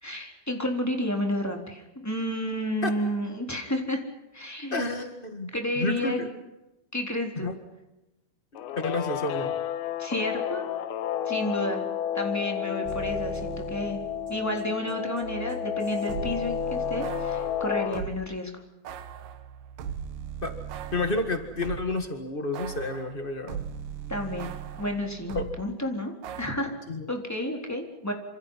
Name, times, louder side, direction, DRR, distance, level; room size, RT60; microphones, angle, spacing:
voice 1, 0.0-4.0 4.3-4.8 5.5-6.2 6.9-7.5 10.0-10.6 11.2-11.8 12.1-14.0 14.3-18.5 24.1-26.7 27.1-28.1, left 1 dB, 5° left, 2 dB, 3.4 m, -31 dB
voice 2, 4.7-6.3 7.4-7.5 8.5-9.5 20.4-20.5 20.9-23.6 25.3-25.4 26.9-27.1, left 3 dB, 65° left, 6 dB, 0.5 m, -30 dB
Guitar, 8.6-18.0, left 10 dB, 90° left, 3.0 m, -31 dB
sound 1, 12.8-18.2 18.8-22.0 22.5-25.6 26.2-26.5, right 8 dB, 70° right, 2.9 m, -39 dB
27.0 x 26.5 x 5.7 m, 0.96 s
omnidirectional pair, 4.3 m